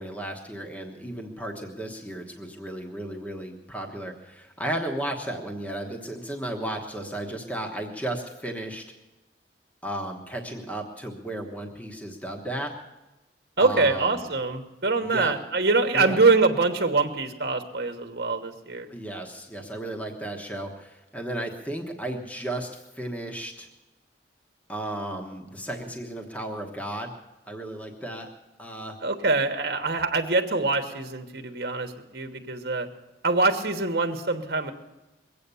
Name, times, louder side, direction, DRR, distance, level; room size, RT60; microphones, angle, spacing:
voice 1, 0.0-8.8 9.8-12.8 13.6-14.2 15.1-15.3 15.9-16.2 18.9-23.7 24.7-27.1 27.5-28.3 28.6-29.0, right 1 dB, 10° left, 2 dB, 1.2 m, -34 dB
voice 2, 13.6-18.9 29.0-32.9 33.2-34.7, right 3 dB, 60° right, 6 dB, 1.2 m, -24 dB
22.0 x 8.5 x 6.9 m, 1.0 s
head